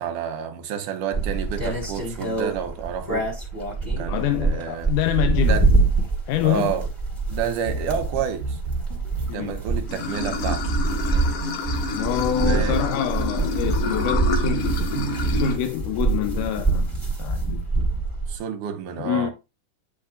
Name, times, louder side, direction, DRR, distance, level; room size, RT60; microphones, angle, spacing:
voice 1, 0.0-3.3 4.0-4.9 5.4-5.7 6.4-6.9 7.3-8.6 9.3-10.7 12.4-12.8 18.3-19.3, right 8 dB, 75° right, 2.5 m, -29 dB
sound 1, 1.1-18.4, right 3 dB, 5° right, 3.4 m, -25 dB
voice 2, 4.1-5.6 6.3-6.8 9.3-9.6 11.9-17.7 19.0-19.3, left 12 dB, 80° left, 2.0 m, -26 dB
sound 2, 7.7-15.7, right 3 dB, 45° right, 2.3 m, -32 dB
Water / Sink (filling or washing), 9.9-15.6, left 4 dB, 60° left, 1.8 m, -29 dB
11.0 x 5.6 x 2.5 m
omnidirectional pair, 3.8 m